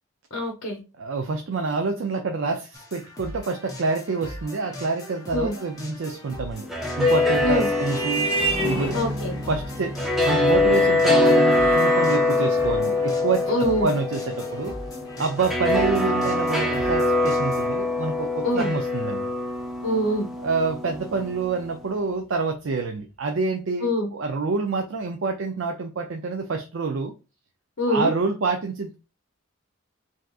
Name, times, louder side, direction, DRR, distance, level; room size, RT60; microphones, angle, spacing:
voice 1, 0.3-0.8 5.3-5.5 7.4-7.7 8.9-9.3 13.5-13.9 18.4-18.7 19.8-20.3 23.8-24.1 27.8-28.1, left 1 dB, 60° left, 0.8 m, -24 dB
voice 2, 1.0-6.7 7.0-8.3 8.6-9.0 9.3-10.0 10.2-14.7 15.2-19.3 20.4-27.1 27.9-28.9, right 4 dB, 60° right, 0.4 m, -27 dB
sound 1, 2.7-17.7, left 1 dB, 15° left, 0.8 m, -40 dB
Vehicle horn car horn honking, 6.4-15.4, right 2 dB, 25° right, 1.1 m, -32 dB
sound 2, 6.5-21.7, left 2 dB, ahead, 0.5 m, -24 dB
3.4 x 2.8 x 2.3 m
head